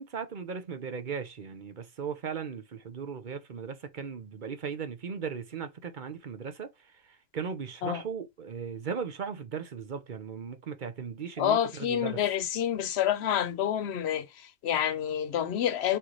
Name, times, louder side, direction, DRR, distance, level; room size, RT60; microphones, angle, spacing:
voice 1, 0.0-12.2, right 6 dB, 55° right, 0.8 m, -37 dB
voice 2, 11.4-16.0, left 10 dB, 90° left, 0.9 m, -28 dB
4.3 x 3.2 x 3.8 m
omnidirectional pair, 1.0 m